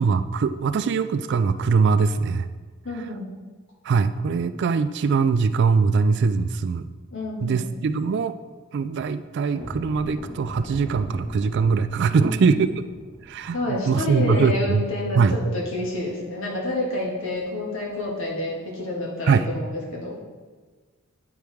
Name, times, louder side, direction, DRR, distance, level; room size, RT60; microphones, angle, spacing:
voice 1, 0.0-2.5 3.9-6.9 7.4-8.3 8.7-12.7 13.3-14.8 15.2-15.3 19.3-19.4, right 5 dB, 55° right, 12 dB, 0.3 m, -22 dB
voice 2, 2.8-3.2 7.1-7.6 12.1-12.6 13.5-20.2, left 2 dB, 60° left, -3 dB, 1.9 m, -29 dB
sound 1, 9.5-16.3 16.6-16.8 17.2-17.4 17.8-18.0, equal, 20° right, 1.1 m, -41 dB
8.9 x 4.8 x 3.5 m, 1.4 s
head